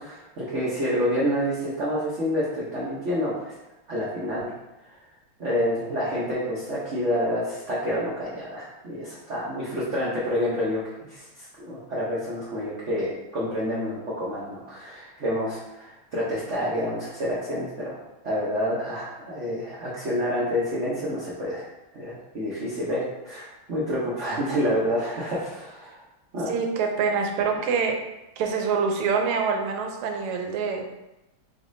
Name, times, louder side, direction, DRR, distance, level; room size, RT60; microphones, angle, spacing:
voice 1, 0.0-3.5 3.9-4.5 5.4-10.8 11.1-18.0 18.2-21.6 21.9-26.0 26.3-26.5, equal, 75° right, -8 dB, 0.6 m, -28 dB
voice 2, 26.5-28.0 28.4-30.8, right 5 dB, 90° right, 3 dB, 1.5 m, -25 dB
4.1 x 3.4 x 2.6 m, 0.95 s
omnidirectional pair, 2.4 m